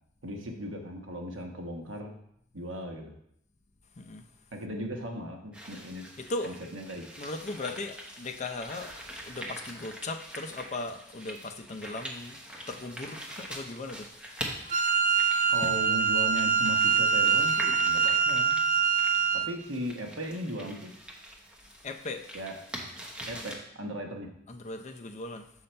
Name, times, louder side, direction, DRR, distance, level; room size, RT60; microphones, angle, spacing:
voice 1, 0.2-2.2 2.5-3.1 4.5-6.1 6.4-7.0 15.5-18.6 19.3-20.9 22.3-22.5 23.3-24.3, equal, 70° right, 2 dB, 1.1 m, -37 dB
sound 1, 5.5-23.5, equal, 5° right, 0.9 m, -44 dB
voice 2, 6.2-6.5 7.2-12.4 12.7-14.1 21.8-22.3 24.5-25.5, left 2 dB, 35° left, 6 dB, 0.5 m, -38 dB
Wind instrument woodwind instrument, 14.7-19.5, right 6 dB, 45° right, 0.5 m, -24 dB
6.6 x 5.6 x 4.3 m, 0.73 s
head